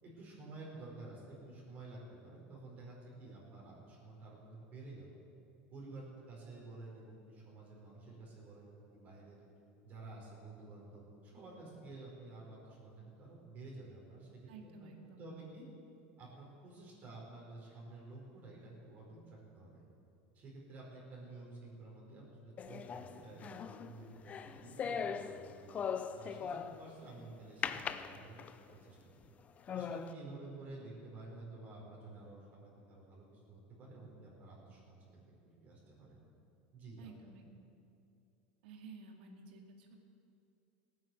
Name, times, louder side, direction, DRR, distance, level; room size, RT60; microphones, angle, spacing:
voice 1, 0.0-5.1 5.7-9.4 9.8-14.9 15.2-15.7 16.2-19.8 20.3-25.8 26.1-28.4 28.7-29.1 29.7-35.2 35.6-36.2 36.7-37.1, right 2 dB, 40° right, -4 dB, 4.5 m, -51 dB
voice 2, 14.5-15.3 37.0-37.5 38.6-40.0, right 4 dB, 80° right, 3 dB, 2.2 m, -53 dB
sound 1, 22.6-27.0 27.6-28.7 29.2-29.3 29.7-30.1, left 7 dB, 30° left, 0.6 m, -40 dB
17.0 x 9.4 x 7.8 m, 2.6 s
supercardioid pair, 135°, 5 cm